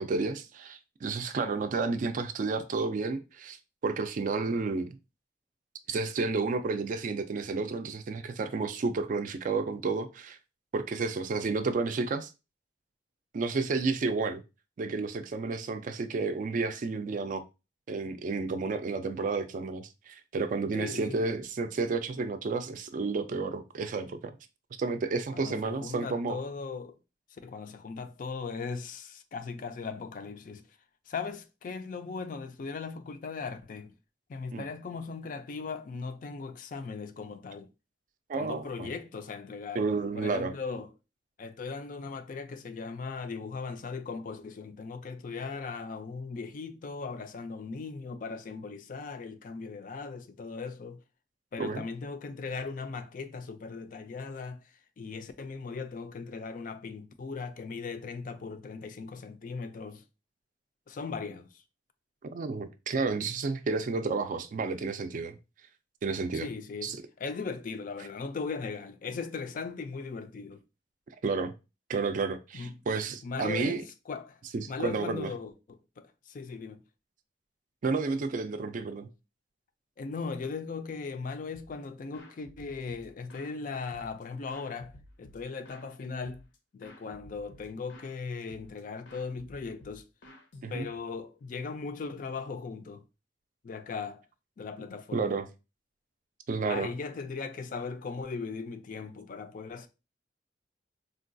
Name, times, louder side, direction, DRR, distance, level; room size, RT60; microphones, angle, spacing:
voice 1, 0.0-3.6 3.8-5.0 5.9-10.4 10.7-12.3 13.3-14.4 14.8-17.4 17.9-24.4 24.8-26.4 34.5-34.7 38.3-38.9 39.7-40.5 51.6-51.9 62.3-65.4 66.0-66.5 66.8-67.0 71.2-71.5 71.9-73.8 74.5-75.3 77.8-79.1 90.6-90.9 95.1-95.5 96.5-96.9, right 4 dB, 45° right, 0.3 m, -31 dB
voice 2, 20.8-21.3 25.3-27.0 27.4-30.6 31.1-33.9 34.3-37.7 38.3-39.8 40.1-40.9 41.4-51.0 51.5-54.6 55.0-60.0 60.9-61.5 66.3-70.6 72.6-72.7 73.2-74.4 74.7-76.8 80.0-84.9 85.2-86.4 86.7-90.1 90.7-93.0 93.6-94.2 94.6-95.3 96.7-99.9, left 4 dB, 50° left, 0.4 m, -38 dB
sound 1, 81.5-81.9 82.1-83.6 83.9-85.9 86.2-86.6 86.8-88.1 88.5-88.8 89.1-91.1, left 1 dB, 75° left, 0.7 m, -53 dB
3.7 x 2.2 x 2.6 m
head